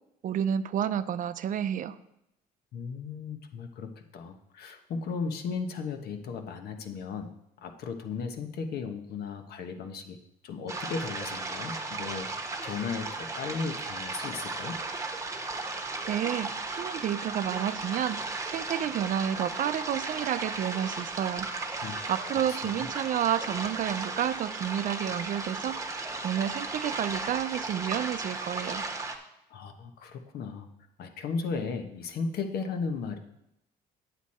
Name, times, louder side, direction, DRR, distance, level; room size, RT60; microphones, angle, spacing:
voice 1, 0.2-2.0 16.1-18.2 18.5-21.5 22.1-28.9, right 10 dB, 50° right, 12 dB, 0.5 m, -30 dB
voice 2, 2.7-7.3 7.6-10.2 10.4-14.8 21.8-22.0 22.5-22.9 29.5-30.7 31.0-33.2, left 5 dB, 70° left, 6 dB, 1.1 m, -36 dB
sound 1, 10.7-29.2, right 3 dB, 20° right, 1.2 m, -35 dB
8.2 x 8.1 x 4.3 m, 0.81 s
cardioid pair, 110°, 17 cm